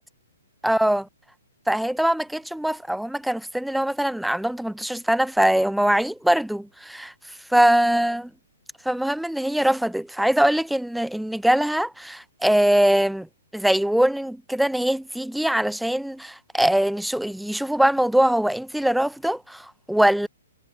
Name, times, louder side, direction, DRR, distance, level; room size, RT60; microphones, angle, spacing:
voice 1, 0.6-1.1 1.7-7.1 7.5-8.3 8.8-13.3 13.5-20.3, right 1 dB, ahead, 6.1 m, -22 dB
hypercardioid pair, 130°, 0 cm